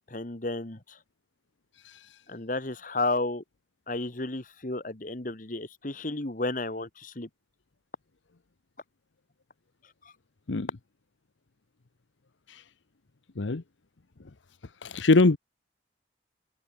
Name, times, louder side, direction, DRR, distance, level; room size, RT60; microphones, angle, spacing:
voice 1, 0.1-1.0 2.3-3.4 3.9-7.3, left 2 dB, 45° left, 1.5 m, -32 dB
voice 2, 14.8-15.4, left 3 dB, 85° left, 0.9 m, -23 dB
head